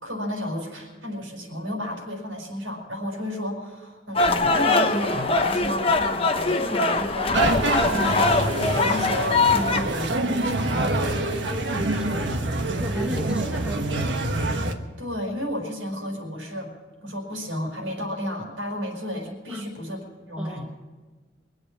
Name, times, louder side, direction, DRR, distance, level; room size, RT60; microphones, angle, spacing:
voice 1, 0.0-7.6 8.0-11.2 15.0-16.7 17.0-20.7, equal, 80° right, 0 dB, 5.1 m, -32 dB
sound 1, 4.1-9.8, left 3 dB, 30° left, 0.9 m, -22 dB
sound 2, 7.3-14.7, right 2 dB, 65° right, 1.3 m, -26 dB
voice 2, 11.5-14.2 19.5-19.8 20.4-20.6, equal, 5° right, 1 dB, 1.5 m, -34 dB
23.5 x 8.1 x 7.4 m, 1.3 s
head